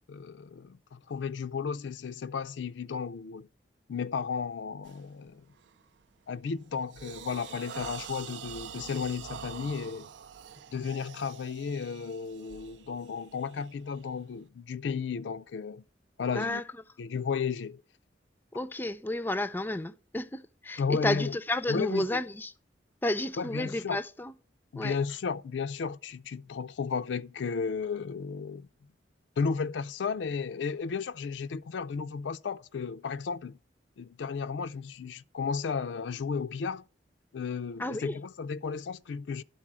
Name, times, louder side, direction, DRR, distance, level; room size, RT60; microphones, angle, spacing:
voice 1, 0.1-3.5 3.9-5.4 6.3-10.1 10.7-15.8 16.2-16.6 17.0-17.8 20.8-21.3 21.7-22.2 23.4-24.0 24.7-28.7 29.4-33.6 34.0-36.8 37.3-39.4, left 5 dB, 80° left, 0.4 m, -34 dB
sound 1, 4.8-5.1 5.6-5.9 6.3-14.4, right 7 dB, 80° right, 0.5 m, -46 dB
voice 2, 18.5-22.5 23.0-24.3 24.8-25.0 37.8-38.2, left 1 dB, 10° left, 0.4 m, -31 dB
11.0 x 4.1 x 7.4 m
head